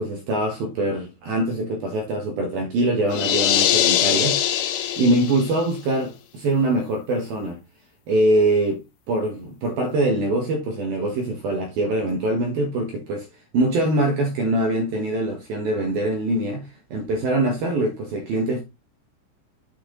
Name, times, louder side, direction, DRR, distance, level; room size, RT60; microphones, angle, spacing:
voice 1, 0.0-7.6 8.1-8.8 9.1-13.2 13.5-18.6, right 1 dB, 60° right, 2.7 m, -23 dB
sound 1, 3.1-5.6, left 11 dB, 85° left, 3.8 m, -22 dB
8.7 x 5.7 x 4.0 m
omnidirectional pair, 6.0 m